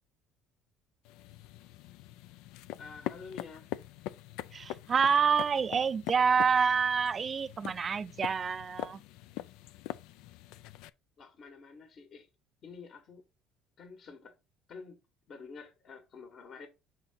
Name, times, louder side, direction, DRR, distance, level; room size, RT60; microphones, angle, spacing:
sound 1, 1.0-10.9, left 14 dB, 80° left, 0.4 m, -43 dB
voice 1, 2.8-3.7 11.2-12.3 12.6-13.2 13.8-14.3 14.7-15.0 15.3-16.7, left 5 dB, 50° left, 1.5 m, -48 dB
voice 2, 4.5-9.0, right 6 dB, 35° right, 0.4 m, -27 dB
5.9 x 3.8 x 4.3 m
supercardioid pair, 95°, 0 cm